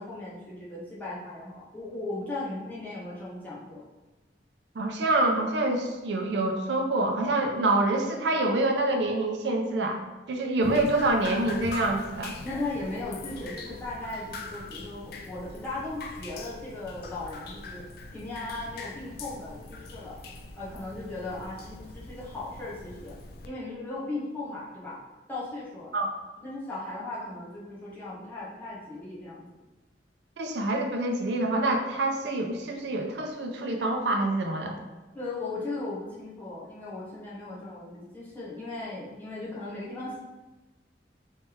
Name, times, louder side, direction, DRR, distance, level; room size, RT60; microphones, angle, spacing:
voice 1, 0.0-3.8 12.4-17.9 18.1-20.2 20.6-23.2 23.4-25.0 25.3-25.9 26.4-29.5 35.1-40.2, left 2 dB, 10° left, -9 dB, 1.0 m, -37 dB
voice 2, 4.8-10.0 10.3-12.4 25.9-26.1 30.4-34.8, right 2 dB, 75° right, 2 dB, 0.5 m, -26 dB
Drip, 10.6-23.5, left 3 dB, 60° left, 0.4 m, -42 dB
3.3 x 3.2 x 3.1 m, 1.1 s
head